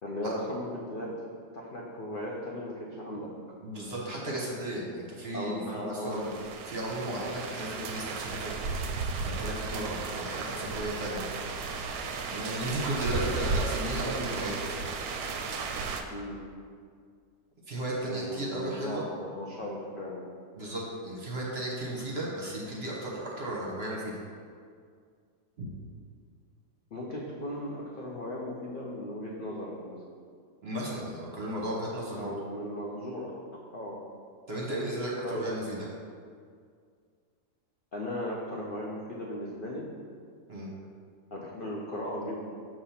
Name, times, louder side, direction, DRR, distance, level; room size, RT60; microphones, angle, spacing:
voice 1, 0.0-1.1 1.5-3.3 5.3-6.3 16.1-16.4 18.0-20.2 26.9-30.0 32.2-33.3 33.7-34.0 35.2-35.5 37.9-39.9 41.3-42.4, left 1 dB, 55° left, -4 dB, 0.6 m, -37 dB
voice 2, 3.6-6.3 6.7-8.5 8.8-8.9 9.2-11.2 12.3-14.6 17.7-19.1 20.6-24.2 25.6-25.7 30.6-32.3 34.5-35.9 40.5-40.7, right 1 dB, 45° right, -4 dB, 1.1 m, -35 dB
sound 1, 6.1-16.0, right 4 dB, 70° right, 1.0 m, -34 dB
6.8 x 3.0 x 5.7 m, 2.1 s
omnidirectional pair, 1.7 m